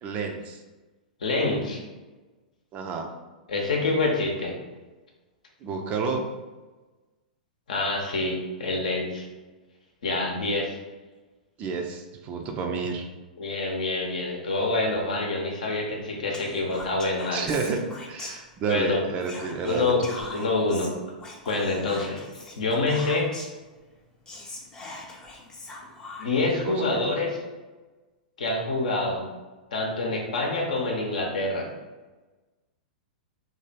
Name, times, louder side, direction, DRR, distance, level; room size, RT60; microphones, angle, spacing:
voice 1, 0.0-0.6 2.7-3.1 5.6-6.3 11.6-13.1 17.3-20.1 26.5-27.2, right 5 dB, 30° right, 3 dB, 0.5 m, -30 dB
voice 2, 1.2-1.8 3.5-4.6 7.7-9.3 10.0-10.8 13.4-17.5 18.7-19.0 19.6-20.9 21.5-22.2 22.6-23.3 26.2-27.4 28.4-29.2 29.7-31.7, left 2 dB, 65° left, 0 dB, 0.8 m, -26 dB
Whispering, 16.3-18.8 19.2-23.6 24.0-24.1 24.3-26.5, left 2 dB, 15° left, 0.6 m, -42 dB
2.9 x 2.7 x 4.1 m, 1.2 s
figure-of-eight pair, 100°, 5 cm